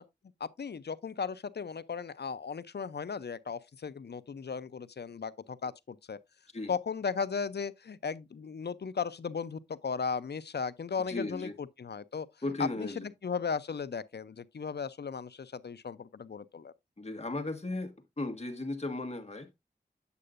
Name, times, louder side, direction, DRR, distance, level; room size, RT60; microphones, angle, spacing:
voice 1, 0.4-6.2 6.7-12.3 12.6-16.7, left 5 dB, 75° left, 0.5 m, -36 dB
voice 2, 11.1-11.5 12.4-13.1 17.0-19.5, left 2 dB, 40° left, 1.6 m, -36 dB
8.3 x 7.6 x 2.5 m
wide cardioid pair, 70°, 17 cm